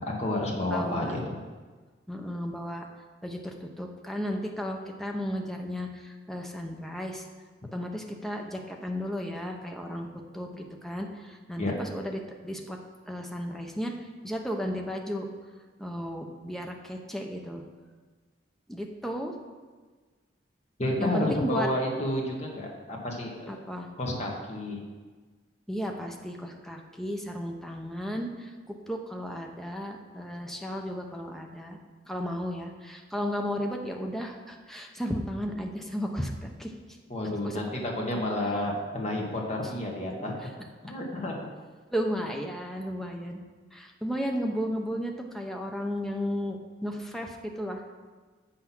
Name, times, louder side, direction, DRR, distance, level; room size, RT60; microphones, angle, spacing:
voice 1, 0.0-1.4 11.6-11.7 20.8-23.5 24.0-24.8 37.1-40.3 40.8-41.4, left 1 dB, 40° left, -2 dB, 1.6 m, -30 dB
voice 2, 0.7-1.2 2.1-2.9 3.2-7.2 7.7-10.1 10.3-12.8 13.1-13.9 14.2-15.3 15.8-17.6 18.7-19.3 21.0-21.7 23.5-23.9 25.7-31.8 32.1-36.7 37.4-37.6 38.1-38.2 41.9-43.4 43.7-47.8, equal, ahead, 2 dB, 0.7 m, -34 dB
7.6 x 5.8 x 6.0 m, 1.4 s
head